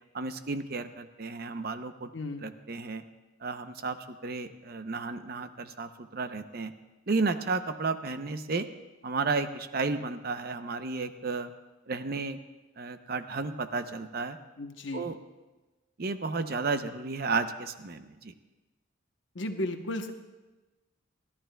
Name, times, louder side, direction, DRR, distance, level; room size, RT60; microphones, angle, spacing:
voice 1, 0.1-2.1 2.4-3.0 3.4-6.7 7.1-8.7 9.0-11.5 11.9-12.4 12.8-14.4 14.9-15.2 16.0-18.3, right 4 dB, 50° right, 9 dB, 0.6 m, -32 dB
voice 2, 2.1-2.5 14.6-15.2 19.3-20.1, left 1 dB, 65° left, 6 dB, 0.9 m, -34 dB
28.5 x 11.0 x 2.3 m, 1.2 s
head